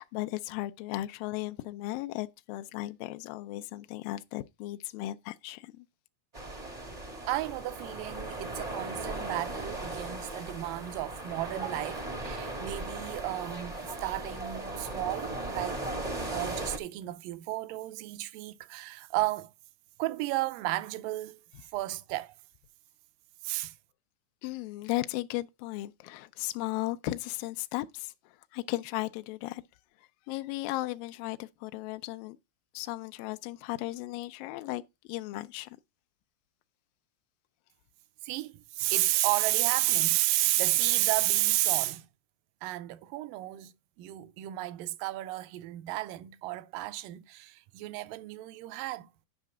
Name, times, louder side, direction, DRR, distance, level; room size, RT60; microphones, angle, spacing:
voice 1, 0.0-5.9 24.4-28.1 28.5-29.6 30.3-32.4 32.7-34.8 35.1-35.8, left 18 dB, 80° left, 2.2 m, -36 dB
sound 1, 6.3-16.8, right 2 dB, 45° right, 0.4 m, -37 dB
voice 2, 7.3-15.8 16.3-19.5 20.0-22.4 23.4-23.8 38.2-42.1 42.6-49.1, right 17 dB, 80° right, 2.1 m, -32 dB
9.8 x 5.8 x 3.7 m
omnidirectional pair, 4.3 m